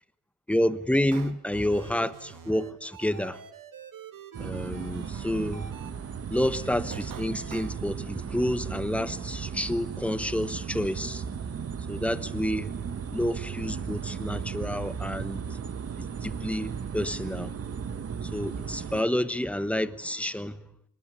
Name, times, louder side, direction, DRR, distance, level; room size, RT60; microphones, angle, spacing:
voice 1, 0.5-3.4 4.4-5.9 6.3-11.2 11.9-12.8 13.1-15.4 16.0-17.5 18.2-20.7, left 1 dB, 5° left, 1.1 m, -29 dB
sound 1, 0.9-5.9 6.3-7.7, right 8 dB, 75° right, 2.1 m, -44 dB
sound 2, 4.3-19.0, right 7 dB, 45° right, 1.3 m, -36 dB
25.5 x 19.5 x 9.6 m
wide cardioid pair, 140°, 33 cm